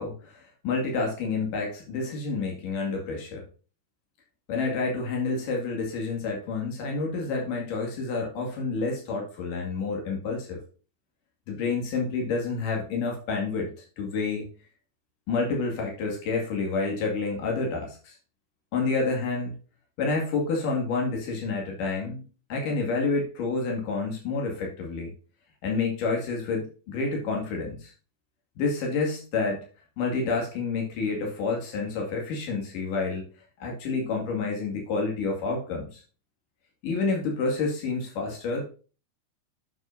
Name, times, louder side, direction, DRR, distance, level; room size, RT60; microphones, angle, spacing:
voice 1, 0.0-3.4 4.5-10.6 11.5-14.5 15.3-18.2 18.7-19.5 20.0-25.1 25.6-27.9 28.6-29.6 30.0-33.3 33.6-36.0 36.8-38.6, left 4 dB, 85° left, 0 dB, 3.8 m, -29 dB
8.6 x 7.3 x 2.6 m, 0.35 s
omnidirectional pair, 3.6 m